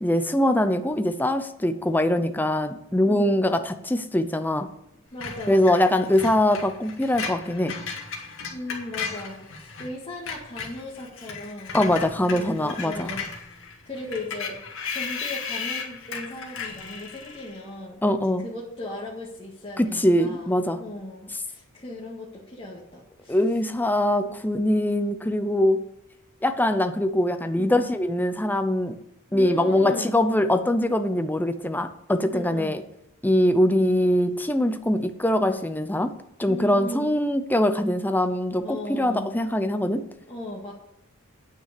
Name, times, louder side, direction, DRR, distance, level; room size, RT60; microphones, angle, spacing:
voice 1, 0.0-4.7 5.5-7.8 11.7-13.1 18.0-18.4 19.8-20.8 23.3-25.8 26.4-29.0 29.3-32.8 33.2-36.1 36.4-40.1, left 1 dB, 10° left, 8 dB, 0.6 m, -23 dB
voice 2, 3.0-3.4 5.1-5.9 8.5-11.8 12.3-13.2 13.9-14.6 14.9-18.0 18.4-20.5 20.8-23.4 24.2-24.4 27.6-27.8 29.3-30.1 32.3-32.8 36.4-37.2 38.6-39.3 40.3-40.7, left 1 dB, 25° left, -6 dB, 1.9 m, -37 dB
Screech, 5.2-9.9 10.2-17.6, left 5 dB, 65° left, 2.0 m, -35 dB
9.1 x 6.2 x 8.3 m, 0.81 s
head